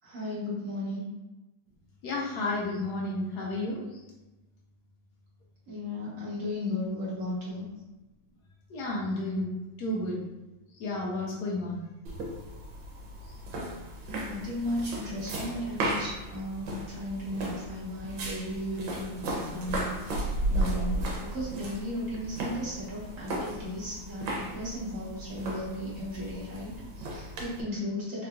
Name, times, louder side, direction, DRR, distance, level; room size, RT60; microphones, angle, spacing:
voice 1, 0.0-1.1 5.7-7.6 14.0-20.2 20.5-28.3, left 1 dB, 50° right, -8 dB, 1.2 m, -35 dB
voice 2, 2.0-3.8 8.7-9.5 9.8-10.2 10.7-11.8, left 2 dB, 70° left, -3 dB, 1.0 m, -31 dB
sound 1, 12.1-27.6, right 1 dB, 85° right, 1.5 m, -35 dB
3.7 x 2.7 x 2.2 m, 1.0 s
omnidirectional pair, 2.1 m